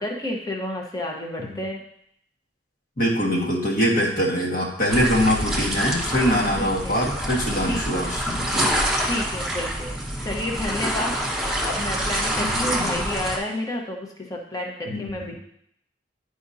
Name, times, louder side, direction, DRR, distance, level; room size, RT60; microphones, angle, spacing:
voice 1, 0.0-1.8 6.6-7.0 7.7-8.1 9.0-11.2 11.6-15.3, left 1 dB, 20° left, 0 dB, 1.1 m, -30 dB
voice 2, 3.0-8.7 12.4-13.0 14.9-15.3, equal, 50° left, -3 dB, 1.6 m, -23 dB
sound 1, 4.9-13.4, equal, 5° right, 1.3 m, -26 dB
11.0 x 5.0 x 2.8 m, 0.71 s
head